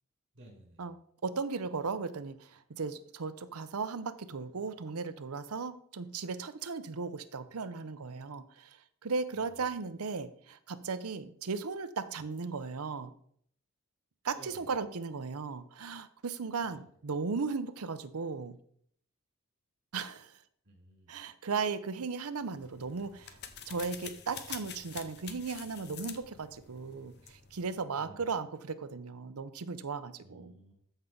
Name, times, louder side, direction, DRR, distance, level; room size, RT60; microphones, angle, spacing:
voice 1, 0.3-0.8 9.4-9.6 14.3-14.7 16.6-16.8 20.6-21.1 28.0-28.3 30.2-30.7, right 1 dB, 55° right, -1 dB, 4.4 m, -55 dB
voice 2, 1.2-13.1 14.2-18.6 19.9-20.3 21.1-23.4 23.7-30.5, right 4 dB, 85° right, 12 dB, 0.7 m, -36 dB
sound 1, 22.5-27.8, left 8 dB, 50° left, 0.9 m, -47 dB
13.5 x 5.5 x 3.8 m, 0.63 s
head